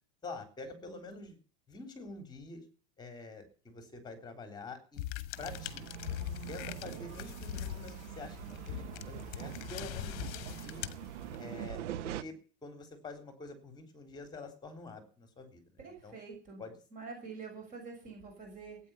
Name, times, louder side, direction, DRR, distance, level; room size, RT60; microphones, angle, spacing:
voice 1, 0.2-1.4 1.7-2.6 3.0-5.1 5.4-5.8 6.5-10.9 11.4-12.4 12.6-16.2 16.6-16.8, left 3 dB, 10° left, 7 dB, 3.6 m, -47 dB
sound 1, 5.0-11.6, left 15 dB, 45° left, 1.2 m, -42 dB
sound 2, 5.4-12.2, right 11 dB, 85° right, 1.1 m, -43 dB
voice 2, 15.8-16.6 16.9-18.8, right 4 dB, 25° right, 2 dB, 6.7 m, -46 dB
16.5 x 9.2 x 7.1 m, 0.38 s
supercardioid pair, 170°, 35 cm